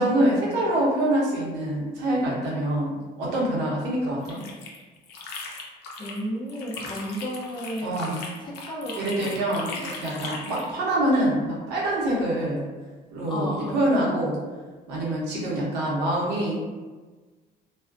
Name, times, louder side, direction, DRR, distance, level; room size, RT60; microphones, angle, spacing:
voice 1, 0.0-4.4 7.8-8.2 8.9-12.6 13.1-14.4 14.9-16.6, right 1 dB, 85° right, -5 dB, 0.8 m, -25 dB
sound 1, 4.0-6.2 6.5-10.7, left 3 dB, 90° left, 0.5 m, -38 dB
voice 2, 6.0-7.9 8.4-9.2 9.6-9.7 13.3-14.1, equal, 25° left, -4 dB, 0.6 m, -33 dB
2.3 x 2.1 x 2.4 m, 1.3 s
cardioid pair, 110°, 17 cm